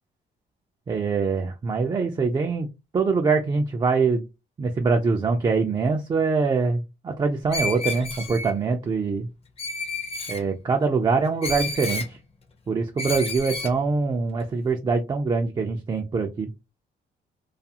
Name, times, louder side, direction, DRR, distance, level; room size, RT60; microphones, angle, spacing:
voice 1, 0.9-2.7 2.9-4.3 4.6-9.3 10.3-12.2 12.7-16.5, right 4 dB, 25° right, 3 dB, 0.3 m, -24 dB
Screech, 7.5-8.5 9.6-10.4 11.4-12.1 13.0-13.7, left 3 dB, 35° left, 0.5 m, -30 dB
2.4 x 2.3 x 2.7 m, 0.25 s
cardioid pair, 120°, 18 cm